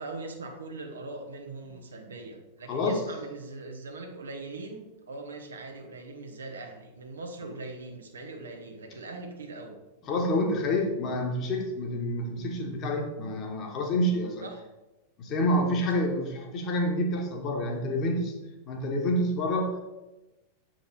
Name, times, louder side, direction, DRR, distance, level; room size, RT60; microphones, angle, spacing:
voice 1, 0.0-9.8 14.4-14.6 15.9-16.0, right 3 dB, 70° right, 3 dB, 1.1 m, -41 dB
voice 2, 2.7-3.0 10.1-14.4 15.2-18.3 18.7-19.8, left 1 dB, 35° left, 2 dB, 1.5 m, -28 dB
8.1 x 4.9 x 4.0 m, 1.0 s
figure-of-eight pair, 90°, 0 cm